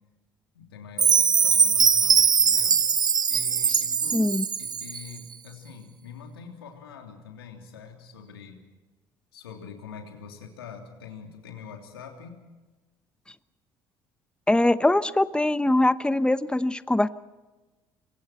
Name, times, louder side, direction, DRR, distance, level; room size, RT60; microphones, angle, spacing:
voice 1, 0.5-2.8 3.3-4.3 4.6-8.6 9.3-12.4, left 6 dB, 90° left, 3 dB, 3.2 m, -44 dB
Chime, 1.0-5.1, right 6 dB, 35° right, 0.8 m, -21 dB
voice 2, 4.1-4.4 14.5-17.1, left 1 dB, 10° left, 14 dB, 1.0 m, -22 dB
28.0 x 23.0 x 4.4 m, 1.2 s
hypercardioid pair, 60°, 12 cm